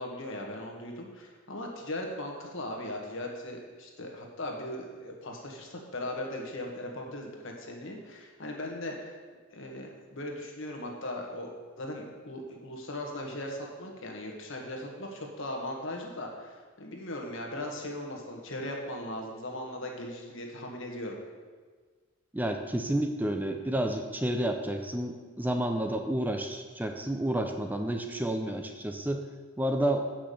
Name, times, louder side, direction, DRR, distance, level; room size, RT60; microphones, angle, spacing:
voice 1, 0.0-9.2 9.5-11.5 11.8-21.2, left 1 dB, 60° left, 1 dB, 1.6 m, -38 dB
voice 2, 22.3-29.2 29.6-30.1, right 1 dB, 10° right, 5 dB, 0.5 m, -30 dB
8.1 x 6.0 x 6.9 m, 1.5 s
head